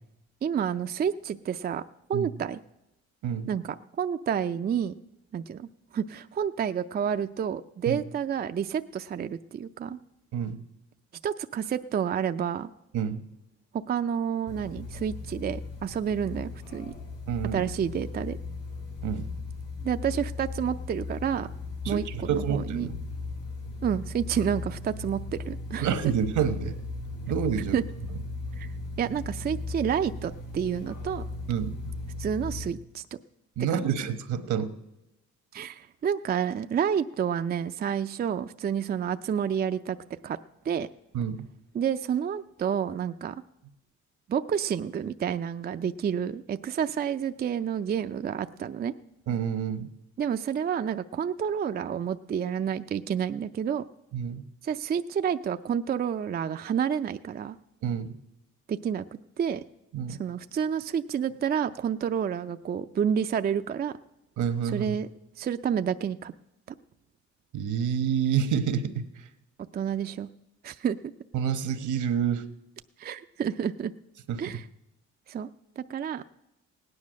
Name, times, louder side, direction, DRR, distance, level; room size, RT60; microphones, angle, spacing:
voice 1, 0.4-1.8 2.1-2.6 3.5-4.9 5.3-10.0 11.2-12.7 13.7-16.9 17.5-18.4 19.8-21.5 21.9-22.9 23.8-25.2 25.5-25.9 27.7-27.8 28.6-28.7 29.0-31.2 32.2-33.0 33.7-33.8 35.5-40.0 40.2-40.4 40.6-40.9 41.7-43.4 44.3-48.9 50.2-53.8 54.6-57.6 58.7-59.6 60.1-64.0 64.7-65.1 65.4-66.3 69.7-70.3 70.6-71.0 73.0-73.9 74.4-74.7 75.3-75.5 75.8-76.2, right 8 dB, 30° right, 9 dB, 0.4 m, -29 dB
voice 2, 12.9-13.3 17.3-17.6 19.0-19.3 21.8-23.0 25.8-26.8 27.3-27.8 31.5-31.9 33.6-34.7 41.1-41.5 49.3-49.9 54.1-54.5 57.8-58.2 59.9-60.2 64.4-64.9 67.5-69.3 71.3-72.5 74.3-74.6, right 8 dB, 75° right, 10 dB, 1.2 m, -28 dB
sound 1, 14.5-32.7, left 3 dB, 90° left, 4.5 m, -37 dB
17.0 x 9.7 x 6.3 m, 0.90 s
cardioid pair, 90°, 30 cm